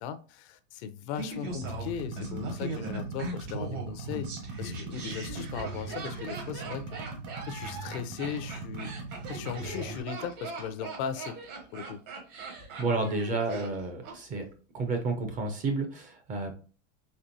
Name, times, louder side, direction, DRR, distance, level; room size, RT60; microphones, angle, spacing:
voice 1, 0.0-4.3 4.6-7.0 7.5-8.9 9.3-11.3 11.7-12.0, left 8 dB, 60° left, 0.6 m, -37 dB
Laughter, 1.2-14.2 14.4-14.5, right 2 dB, 75° right, 1.8 m, -39 dB
sound 1, 1.5-10.0, right 3 dB, 60° right, 1.1 m, -40 dB
voice 2, 12.8-14.4 14.7-16.5, right 3 dB, 20° right, 0.4 m, -30 dB
4.3 x 3.0 x 2.6 m
supercardioid pair, 150°, 38 cm